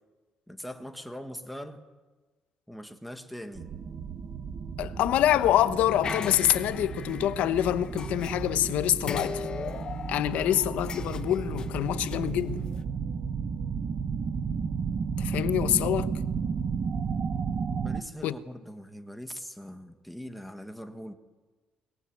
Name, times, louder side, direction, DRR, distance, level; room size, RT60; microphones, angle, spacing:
voice 1, 0.5-1.8 2.7-3.7 17.8-21.1, equal, ahead, 1.6 m, -41 dB
sound 1, 3.6-18.0, right 6 dB, 35° right, 1.2 m, -33 dB
voice 2, 4.8-9.5 10.1-12.6 15.2-16.1 18.2-18.3, left 12 dB, 65° left, 1.0 m, -26 dB
sound 2, 6.0-8.7 9.0-12.8, left 6 dB, 30° left, 1.0 m, -39 dB
22.5 x 21.0 x 9.3 m
cardioid pair, 170°, 3 cm